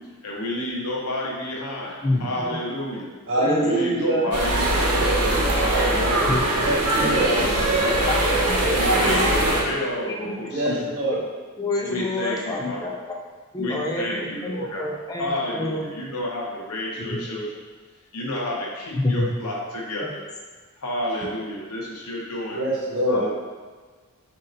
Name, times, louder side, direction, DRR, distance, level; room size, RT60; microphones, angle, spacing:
voice 1, 0.2-3.1 3.6-4.9 5.5-6.4 7.0-8.2 8.8-10.8 11.9-12.8 13.6-14.9 15.2-17.4 18.1-20.2 20.8-22.6 23.1-23.3, left 1 dB, 80° left, -3 dB, 0.8 m, -30 dB
voice 2, 2.0-2.6 3.4-3.6 6.3-6.4 8.1-10.3 10.6-10.7 11.6-13.1 13.5-15.8 17.1-17.2 18.9-19.3 20.0-20.1, left 2 dB, 15° left, -1 dB, 0.5 m, -28 dB
voice 3, 3.3-4.3 6.6-7.3 7.8-8.0 8.8-9.4 10.5-11.2 22.5-23.2, right 1 dB, 60° right, -4 dB, 1.1 m, -24 dB
sound 1, 4.3-9.6, right 1 dB, 85° right, 0.8 m, -21 dB
4.0 x 2.8 x 3.8 m, 1.4 s
head